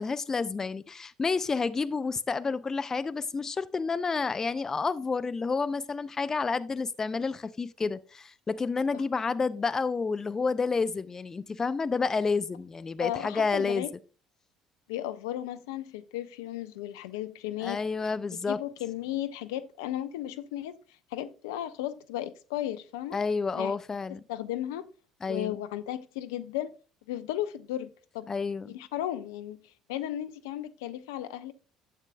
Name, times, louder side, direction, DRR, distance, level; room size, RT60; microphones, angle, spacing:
voice 1, 0.0-13.8 17.6-18.6 23.1-24.2 25.2-25.6 28.3-28.8, left 4 dB, 25° left, 0.5 m, -30 dB
voice 2, 13.0-13.9 14.9-17.8 18.5-20.8 21.1-23.2 23.5-23.7 24.3-24.9 25.3-26.8 27.1-27.9 28.1-28.3 28.7-29.6 29.9-31.5, left 12 dB, 70° left, 0.6 m, -35 dB
12.0 x 8.1 x 2.2 m
figure-of-eight pair, 55°, 2 cm